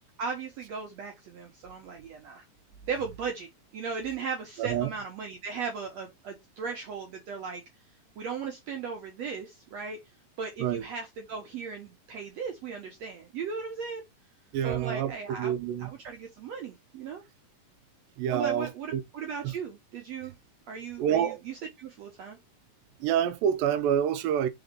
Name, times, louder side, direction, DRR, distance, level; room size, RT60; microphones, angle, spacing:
voice 1, 0.2-2.4 2.9-7.6 8.2-10.0 10.4-14.0 14.6-15.5 15.8-17.2 18.3-20.3 20.7-22.4, right 5 dB, 65° right, 1.8 m, -37 dB
voice 2, 4.6-4.9 10.6-10.8 14.5-15.1 15.4-15.9 18.2-19.0 19.4-19.5 21.0-21.4 23.0-24.5, right 9 dB, 90° right, 2.4 m, -27 dB
5.0 x 4.2 x 5.2 m
omnidirectional pair, 4.1 m